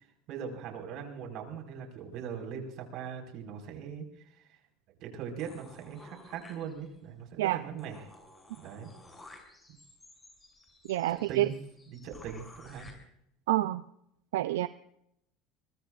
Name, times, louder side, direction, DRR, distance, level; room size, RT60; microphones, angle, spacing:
voice 1, 0.3-4.0 5.0-8.1 8.6-8.9 11.1-11.5 11.9-12.9, right 7 dB, 60° right, 2 dB, 5.0 m, -40 dB
sound 1, 5.4-7.1 7.5-7.6 7.8-12.9, left 2 dB, 15° left, 6.2 m, -54 dB
voice 2, 10.9-11.5 13.5-13.8 14.3-14.7, right 16 dB, 90° right, 13 dB, 0.5 m, -27 dB
23.0 x 23.0 x 2.5 m, 0.76 s
supercardioid pair, 105°, 0 cm